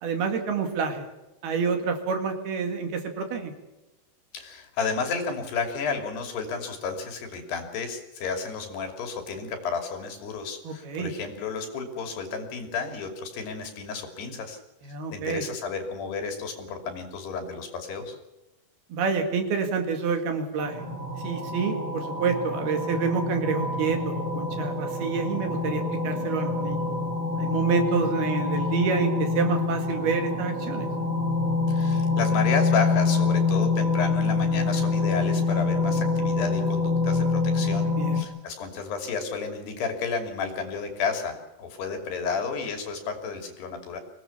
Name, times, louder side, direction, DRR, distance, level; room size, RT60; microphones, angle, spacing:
voice 1, 0.0-1.1 1.4-3.5 10.6-11.1 14.9-15.4 18.9-20.8 21.2-26.9 27.4-30.9 38.0-38.3, right 5 dB, 60° right, 5 dB, 3.8 m, -28 dB
voice 2, 4.3-14.6 15.1-18.2 31.7-44.0, left 5 dB, 65° left, 5 dB, 4.7 m, -32 dB
sound 1, 20.6-38.2, left 3 dB, 30° right, 1.4 m, -26 dB
25.0 x 18.0 x 7.2 m, 1.0 s
omnidirectional pair, 5.3 m